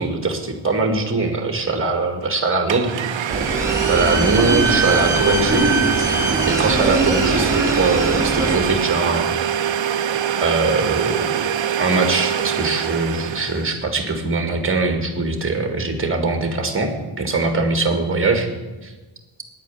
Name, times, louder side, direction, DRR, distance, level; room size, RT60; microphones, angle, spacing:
voice 1, 0.0-3.3 3.9-5.7 6.5-9.3 10.4-11.3 11.8-16.9 17.2-18.5 18.8-18.9, right 3 dB, 25° right, 6 dB, 1.9 m, -21 dB
Domestic sounds home sounds, 2.2-2.3 2.7-13.7, right 8 dB, 65° right, 0.7 m, -23 dB
sound 1, 3.3-8.5, right 2 dB, 5° right, 2.1 m, -21 dB
9.9 x 9.1 x 8.6 m, 1.2 s
wide cardioid pair, 160°, 50 cm